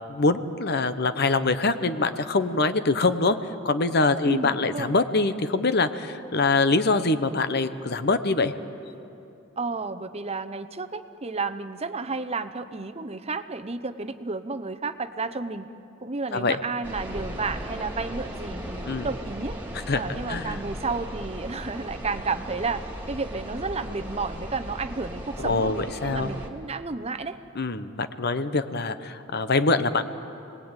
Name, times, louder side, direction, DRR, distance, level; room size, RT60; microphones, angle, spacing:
voice 1, 0.1-3.4 3.6-8.5 16.3-16.6 18.9-19.1 19.9-20.6 25.4-26.3 27.5-30.0, left 3 dB, 50° left, 11 dB, 1.0 m, -24 dB
voice 2, 4.2-4.9 9.6-15.7 16.0-19.6 19.9-22.8 23.1-27.4, right 4 dB, 30° right, 10 dB, 0.8 m, -32 dB
sound 1, 16.8-26.5, equal, 10° right, 2.7 m, -37 dB
29.0 x 20.0 x 9.0 m, 2.9 s
head